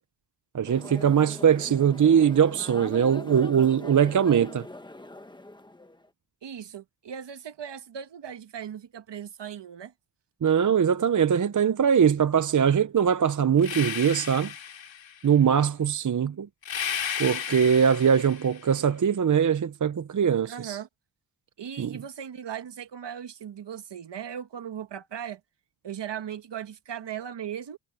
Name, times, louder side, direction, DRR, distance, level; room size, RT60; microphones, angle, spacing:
voice 1, 0.5-4.7 10.4-14.5 15.2-16.5 17.2-20.8 21.8-22.0, right 8 dB, 40° right, 0.8 m, -22 dB
sound 1, 0.6-6.1, left 1 dB, 10° left, 1.4 m, -42 dB
voice 2, 6.4-9.9 20.4-20.9 21.6-25.4 25.8-27.8, right 9 dB, 60° right, 1.7 m, -38 dB
sound 2, 13.6-15.3 16.6-18.7, left 8 dB, 65° left, 3.4 m, -34 dB
cardioid pair, 95°, 48 cm